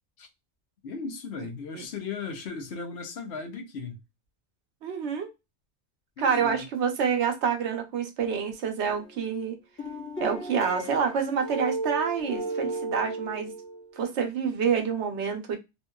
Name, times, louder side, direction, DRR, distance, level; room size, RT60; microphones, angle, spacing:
voice 1, 0.8-3.9 6.2-6.7, left 4 dB, 75° left, 1.0 m, -36 dB
voice 2, 4.8-5.3 6.2-9.6 10.2-13.5 14.0-15.6, right 6 dB, 90° right, 1.0 m, -27 dB
sound 1, 8.9-9.3 9.8-14.1, right 2 dB, 10° left, 0.9 m, -34 dB
2.9 x 2.5 x 2.2 m
omnidirectional pair, 1.1 m